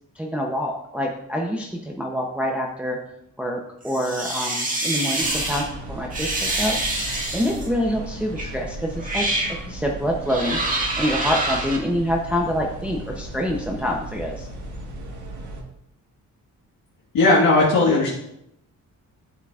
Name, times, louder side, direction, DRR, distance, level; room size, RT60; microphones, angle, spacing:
voice 1, 0.1-3.0 3.4-6.8 7.3-10.6 11.0-14.5, equal, 5° right, -1 dB, 0.6 m, -26 dB
sound 1, 3.8-5.6 6.1-7.7 8.4-8.5 9.0-9.6 10.3-11.8, right 1 dB, 25° right, 1.6 m, -26 dB
sound 2, 5.2-15.6, right 1 dB, 60° right, 1.4 m, -36 dB
voice 2, 17.1-18.1, left 2 dB, 80° left, -6 dB, 1.6 m, -17 dB
11.5 x 7.3 x 2.4 m, 0.81 s
wide cardioid pair, 170°, 33 cm